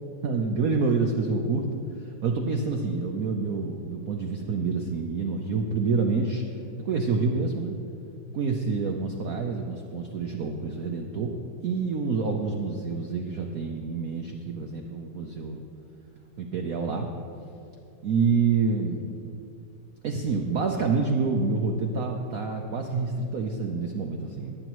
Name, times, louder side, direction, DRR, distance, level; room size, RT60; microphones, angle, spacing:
voice 1, 0.2-1.6 2.0-6.4 6.8-7.8 8.3-11.4 11.6-15.6 16.4-17.1 18.0-19.1 20.0-24.6, right 4 dB, 90° right, 2 dB, 0.7 m, -27 dB
20.0 x 8.9 x 3.0 m, 2.6 s
omnidirectional pair, 2.4 m